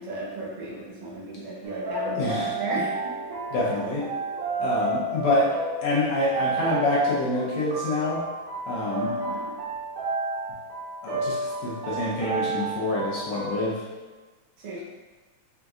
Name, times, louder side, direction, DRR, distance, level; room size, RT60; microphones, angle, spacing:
voice 1, 0.0-2.9 8.9-9.5 14.6-14.8, right 2 dB, 65° right, -6 dB, 1.3 m, -35 dB
sound 1, 1.6-13.7, right 2 dB, 80° right, 2.4 m, -32 dB
voice 2, 2.2-2.5 3.5-4.1 4.6-5.6 5.8-8.2 8.7-9.1 11.0-13.8, left 1 dB, 75° left, -6 dB, 1.7 m, -26 dB
6.0 x 2.5 x 2.3 m, 1.3 s
omnidirectional pair, 3.6 m